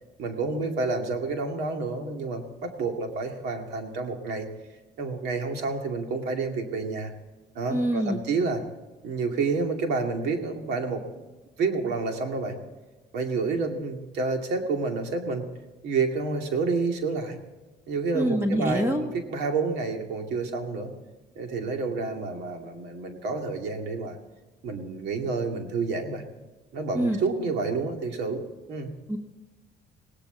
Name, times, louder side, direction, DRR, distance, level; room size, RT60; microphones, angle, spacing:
voice 1, 0.2-4.5 5.0-7.1 7.5-8.6 9.0-11.1 11.6-12.6 13.1-15.4 15.8-17.4 17.9-20.9 21.4-24.2 24.6-26.2 26.7-28.4 28.7-28.9, right 4 dB, 80° right, 3 dB, 2.5 m, -29 dB
voice 2, 7.7-8.2 18.1-19.0 26.9-27.2 29.1-29.2, right 1 dB, 15° right, 3 dB, 1.4 m, -25 dB
18.0 x 18.0 x 4.0 m, 1.2 s
cardioid pair, 110°, 17 cm